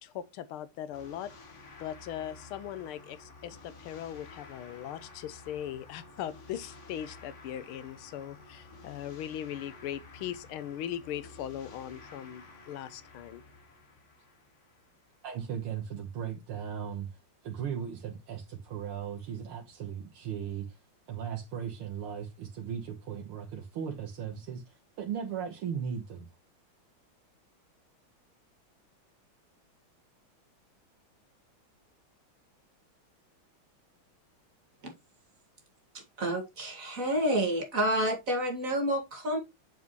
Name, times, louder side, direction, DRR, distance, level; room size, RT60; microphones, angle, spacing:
voice 1, 0.0-1.3 1.8-13.4, left 10 dB, 85° left, 1.6 m, -39 dB
sound 1, 0.9-15.3, left 3 dB, 40° left, 1.5 m, -52 dB
voice 2, 15.2-20.8 21.1-26.3, right 8 dB, 90° right, 2.1 m, -37 dB
voice 3, 35.9-39.4, right 1 dB, 40° right, 2.5 m, -29 dB
7.3 x 6.9 x 3.1 m
omnidirectional pair, 2.3 m